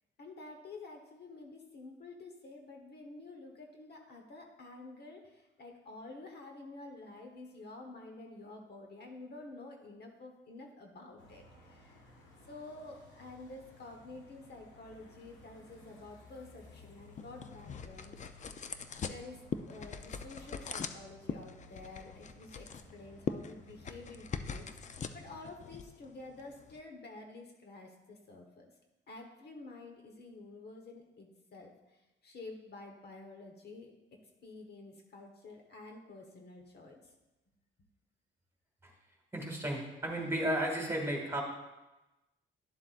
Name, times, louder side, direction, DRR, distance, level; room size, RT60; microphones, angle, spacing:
voice 1, 0.2-12.0 12.5-18.5 19.1-28.7 29.1-33.9 34.4-37.1, left 2 dB, 55° left, 3 dB, 1.2 m, -50 dB
sound 1, 11.2-25.5, left 1 dB, 80° left, 1.5 m, -58 dB
sound 2, 16.6-26.8, left 6 dB, 35° left, 0.5 m, -43 dB
voice 2, 39.3-41.4, right 1 dB, 15° right, 0 dB, 2.0 m, -33 dB
11.0 x 7.3 x 2.5 m, 1.0 s
cardioid pair, 90°, 20 cm